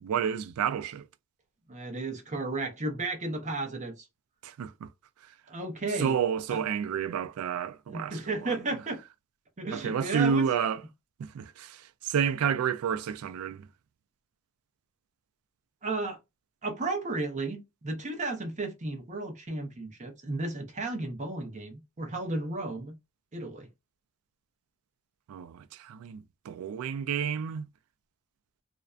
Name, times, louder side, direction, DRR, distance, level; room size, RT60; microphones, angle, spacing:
voice 1, 0.0-1.0 4.4-4.9 6.0-8.2 9.7-10.8 11.3-11.8 12.0-13.6 25.3-26.2 26.5-27.7, right 7 dB, 85° right, 0.3 m, -30 dB
voice 2, 1.7-4.1 5.5-6.2 6.5-6.6 7.9-9.0 9.6-10.5 15.8-16.2 16.6-23.0 23.3-23.7, right 2 dB, 35° right, 0.7 m, -34 dB
2.4 x 2.1 x 2.4 m
head